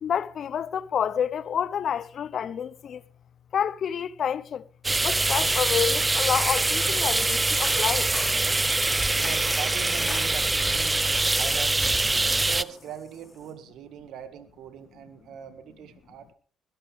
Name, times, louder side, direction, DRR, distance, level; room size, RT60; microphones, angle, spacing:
voice 1, 0.0-3.0 3.5-4.6 5.0-8.1, left 8 dB, 60° left, 0.7 m, -28 dB
sound 1, 4.8-12.6, right 2 dB, 20° right, 0.7 m, -24 dB
sound 2, 7.5-13.5, left 3 dB, 25° left, 4.0 m, -43 dB
voice 2, 9.1-11.0 11.4-16.3, right 8 dB, 75° right, 2.0 m, -41 dB
21.0 x 12.5 x 3.6 m
supercardioid pair, 65°, 0 cm